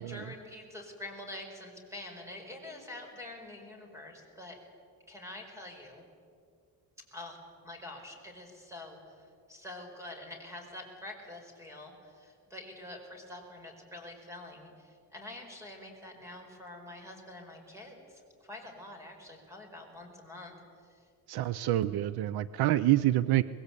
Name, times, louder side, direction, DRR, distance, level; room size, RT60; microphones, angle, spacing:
voice 1, 0.0-4.6 5.1-6.0 7.1-20.5 20.9-21.0, left 2 dB, 5° right, 3 dB, 4.8 m, -46 dB
voice 2, 21.3-23.4, right 15 dB, 80° right, 15 dB, 0.7 m, -26 dB
25.0 x 20.5 x 8.3 m, 2.4 s
cardioid pair, 160°, 38 cm